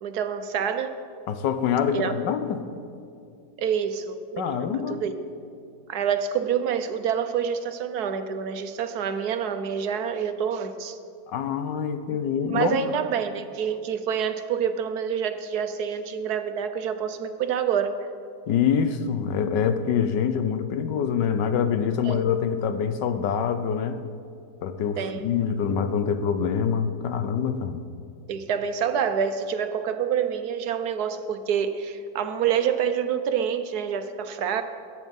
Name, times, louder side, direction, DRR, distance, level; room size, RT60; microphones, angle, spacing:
voice 1, 0.0-0.9 1.9-2.1 3.6-5.1 5.9-11.0 12.1-12.2 12.5-17.9 22.0-22.2 25.0-25.3 28.3-34.6, right 7 dB, 70° right, 9 dB, 1.3 m, -27 dB
voice 2, 1.3-2.7 4.4-5.0 11.3-12.8 18.5-24.0 24.6-27.8, left 7 dB, 90° left, 10 dB, 1.5 m, -25 dB
21.5 x 9.2 x 5.4 m, 2.4 s
omnidirectional pair, 1.8 m